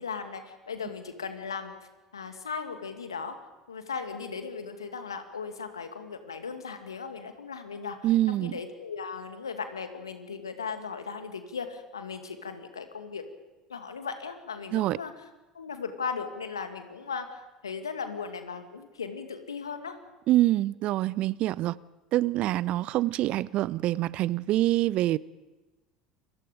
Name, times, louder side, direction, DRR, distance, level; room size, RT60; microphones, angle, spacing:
voice 1, 0.0-3.4 3.7-13.2 13.7-15.1 15.5-20.0, left 5 dB, 80° left, 7 dB, 2.2 m, -37 dB
voice 2, 8.0-8.6 14.7-15.0 20.3-21.8 22.1-25.2, right 15 dB, 50° right, 21 dB, 0.7 m, -25 dB
29.0 x 24.0 x 5.2 m, 1.1 s
figure-of-eight pair, 70°, 2 cm